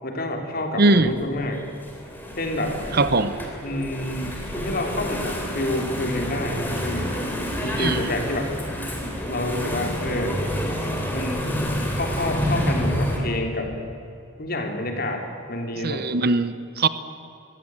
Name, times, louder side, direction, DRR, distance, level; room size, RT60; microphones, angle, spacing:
voice 1, 0.0-1.7 2.4-2.8 3.6-7.2 7.6-8.5 9.3-10.4 11.1-11.5 11.9-13.7 14.4-16.1, left 1 dB, 45° left, 3 dB, 3.3 m, -28 dB
voice 2, 0.8-1.1 2.9-3.4 7.8-8.0 15.8-16.9, right 2 dB, 45° right, 13 dB, 0.8 m, -20 dB
Engine / Mechanisms, 1.0-13.2, equal, 10° left, 3.3 m, -28 dB
24.0 x 15.5 x 8.9 m, 2.6 s
head